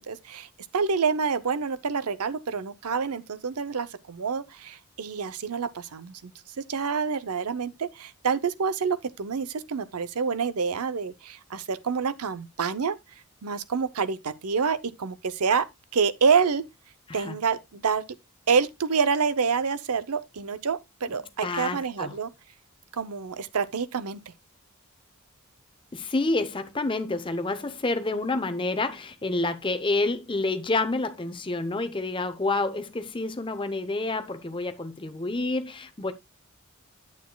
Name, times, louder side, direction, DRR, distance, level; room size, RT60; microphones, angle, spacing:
voice 1, 0.0-6.3 6.6-13.0 13.4-15.7 15.9-16.7 17.1-18.0 18.5-22.3 22.9-24.2, right 5 dB, 85° right, 0.7 m, -27 dB
voice 2, 21.1-22.1 25.9-36.1, left 2 dB, 20° left, 0.7 m, -28 dB
9.2 x 8.3 x 2.3 m
head